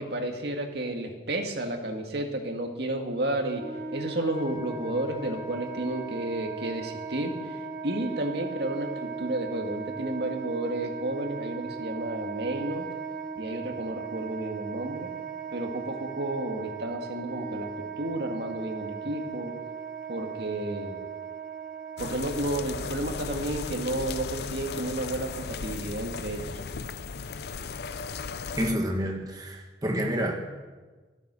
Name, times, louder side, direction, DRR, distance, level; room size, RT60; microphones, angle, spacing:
voice 1, 0.0-3.6 3.9-7.6 7.8-12.9 13.4-15.1 15.5-17.7 18.0-19.5 20.1-21.1 22.0-26.5, right 1 dB, 70° right, 3 dB, 1.9 m, -32 dB
Wind instrument woodwind instrument, 3.5-23.0, right 5 dB, 50° right, 1.1 m, -38 dB
sound 1, 22.0-28.7, left 5 dB, 65° left, 0.5 m, -36 dB
voice 2, 28.6-30.3, equal, 20° right, 2 dB, 1.7 m, -28 dB
13.0 x 12.5 x 6.3 m, 1.3 s
head